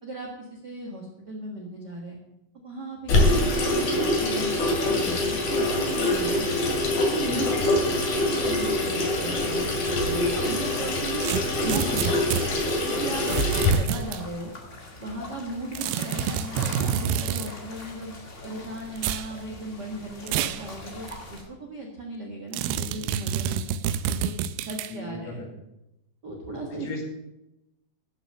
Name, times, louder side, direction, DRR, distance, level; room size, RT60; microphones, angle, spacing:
voice 1, 0.0-2.2 2.5-6.5 7.1-11.3 11.6-12.5 12.9-14.5 15.0-18.1 18.4-23.6 24.1-25.4 26.2-27.0, right 1 dB, 60° right, 0 dB, 1.1 m, -37 dB
Water tap faucet / Sink (filling or washing), 3.1-13.7, left 2 dB, 55° left, 3.2 m, -24 dB
sound 1, 5.3-21.4, left 2 dB, 30° left, 1.4 m, -43 dB
sound 2, 11.2-12.5 13.3-14.2 15.7-17.5 19.0-19.3 20.3-20.6 21.1-21.2 22.5-24.9, right 9 dB, 90° right, 2.6 m, -28 dB
voice 2, 24.9-25.5 26.8-27.0, left 2 dB, 75° left, 0 dB, 4.3 m, -36 dB
13.5 x 6.6 x 6.7 m, 0.91 s
omnidirectional pair, 4.5 m